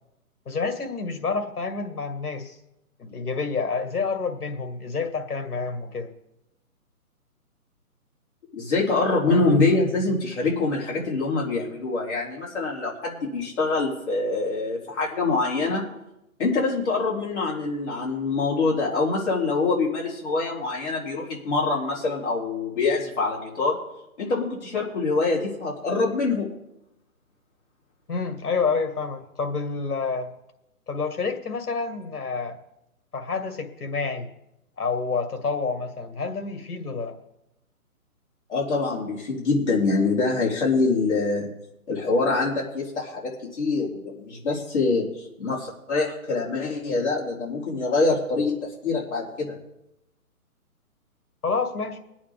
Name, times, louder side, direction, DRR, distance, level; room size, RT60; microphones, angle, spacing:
voice 1, 0.5-2.6 3.0-6.1 9.3-9.9 28.1-30.3 30.9-32.6 33.1-34.3 34.8-37.2 51.4-52.0, left 4 dB, 85° left, 6 dB, 2.1 m, -28 dB
voice 2, 8.5-15.8 16.4-23.8 24.2-26.5 38.5-41.5 41.9-49.5, left 3 dB, 50° left, -4 dB, 3.8 m, -25 dB
22.0 x 8.6 x 3.6 m, 0.86 s
hypercardioid pair, 170°, 44 cm